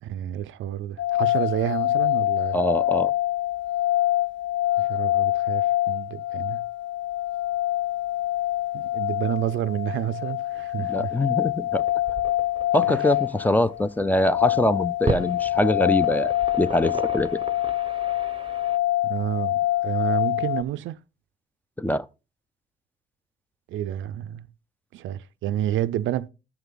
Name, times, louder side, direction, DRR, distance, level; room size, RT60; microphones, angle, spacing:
voice 1, 0.0-2.6 4.8-6.6 8.7-11.2 12.9-13.0 19.0-21.0 23.7-24.5 24.9-26.3, right 12 dB, 75° right, 0.5 m, -29 dB
sound 1, 1.0-20.6, left 15 dB, 70° left, 0.6 m, -25 dB
voice 2, 2.5-3.1 10.8-11.8 12.7-17.4 21.8-22.1, left 1 dB, 10° left, 0.5 m, -23 dB
sound 2, 11.4-18.8, right 5 dB, 25° right, 0.7 m, -36 dB
13.0 x 5.7 x 3.9 m
cardioid pair, 90°, 20 cm